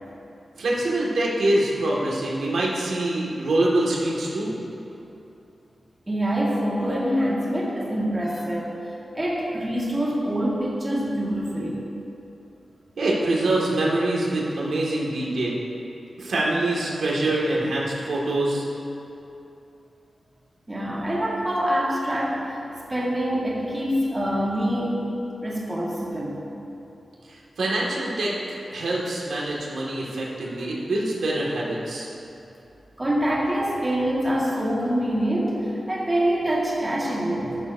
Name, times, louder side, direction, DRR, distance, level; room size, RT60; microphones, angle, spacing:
voice 1, 0.6-4.6 13.0-15.5 16.2-18.6 27.3-32.1, right 1 dB, 90° right, -4 dB, 1.9 m, -25 dB
voice 2, 6.1-8.7 9.1-11.8 20.7-22.6 22.9-25.1 25.4-26.4 33.0-37.6, equal, 20° right, -5 dB, 1.8 m, -25 dB
13.0 x 12.0 x 2.7 m, 2.8 s
wide cardioid pair, 130°, 0 cm